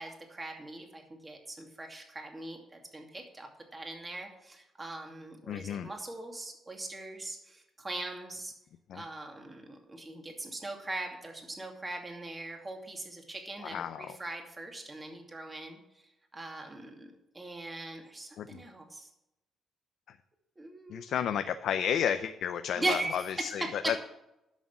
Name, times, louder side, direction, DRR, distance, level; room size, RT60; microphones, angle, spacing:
voice 1, 0.0-8.5 8.9-15.8 16.3-19.1 20.6-21.1 22.8-23.9, right 2 dB, 20° right, 2 dB, 2.5 m, -40 dB
voice 2, 5.5-5.9 8.9-9.0 13.6-14.1 18.4-18.6 20.9-24.0, left 9 dB, 75° left, 9 dB, 0.5 m, -32 dB
10.5 x 6.3 x 7.3 m, 0.91 s
cardioid pair, 90°, 0 cm